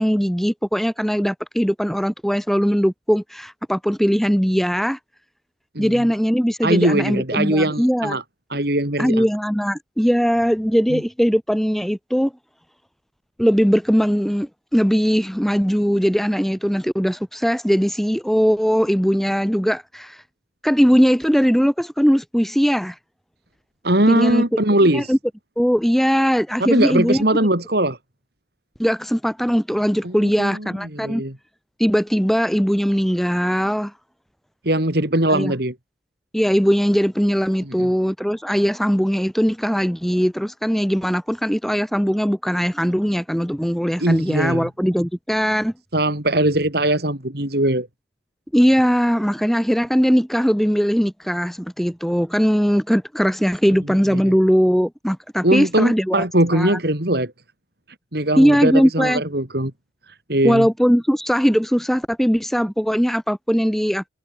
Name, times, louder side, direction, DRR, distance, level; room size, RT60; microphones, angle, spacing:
voice 1, 0.0-5.0 5.8-8.2 9.0-12.3 13.4-20.2 20.6-23.0 24.1-24.6 24.9-25.2 25.6-27.4 28.8-31.2 31.8-33.9 35.3-35.5 36.3-45.7 48.5-56.3 56.5-56.8 58.4-59.2 60.4-64.1, equal, ahead, 5.2 m, -20 dB
voice 2, 5.7-6.1 6.6-8.2 8.5-9.3 10.9-11.0 23.8-25.1 26.6-28.0 30.0-31.4 34.6-35.8 37.6-37.9 44.0-44.7 45.9-47.9 54.1-54.3 55.4-57.3 58.1-59.7 60.3-60.7, right 1 dB, 60° right, 4.0 m, -20 dB
head